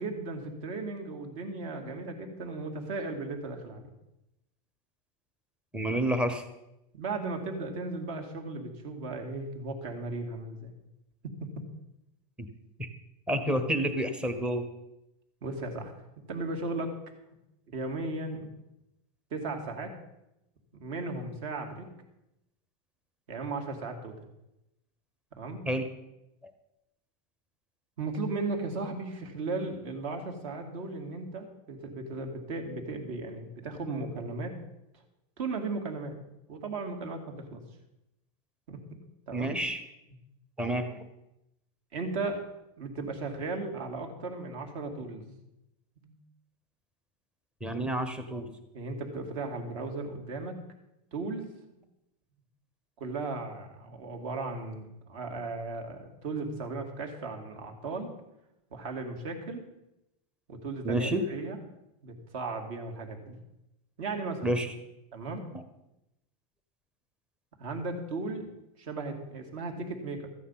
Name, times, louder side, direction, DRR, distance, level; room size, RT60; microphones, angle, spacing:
voice 1, 0.0-3.9 6.9-10.7 11.2-11.6 15.4-15.9 16.3-16.9 17.7-18.5 19.3-19.9 20.8-21.9 23.3-24.1 25.3-25.7 28.0-34.6 35.4-36.2 36.5-37.6 38.7-38.8 39.3-39.6 41.9-42.4 42.8-45.3 46.0-46.1 48.7-50.6 51.1-51.5 53.0-58.1 58.7-59.7 60.5-61.6 62.0-63.4 64.0-64.5 65.1-65.5 67.6-68.5 68.8-70.3, right 3 dB, 55° right, 3 dB, 2.4 m, -36 dB
voice 2, 5.7-6.4 12.8-12.9 13.3-14.6 25.7-25.8 39.3-39.8 40.6-40.9 47.6-48.5 60.8-61.2 64.4-64.7, right 1 dB, 5° right, 8 dB, 0.8 m, -29 dB
13.5 x 9.3 x 5.7 m, 0.89 s
supercardioid pair, 165°, 20 cm